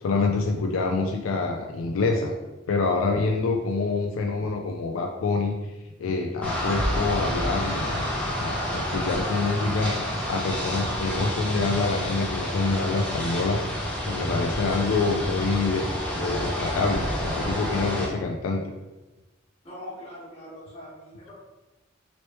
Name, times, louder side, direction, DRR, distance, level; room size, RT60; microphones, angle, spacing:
voice 1, 0.0-2.3 2.7-5.5 6.0-8.1 8.4-9.9 10.3-13.6 14.0-15.9 16.1-18.6, left 3 dB, 85° left, 2 dB, 0.4 m, -26 dB
sound 1, 6.4-18.1, equal, 5° left, 0.8 m, -29 dB
voice 2, 19.6-21.3, left 1 dB, 30° left, -7 dB, 1.4 m, -42 dB
3.1 x 3.0 x 3.0 m, 1.1 s
head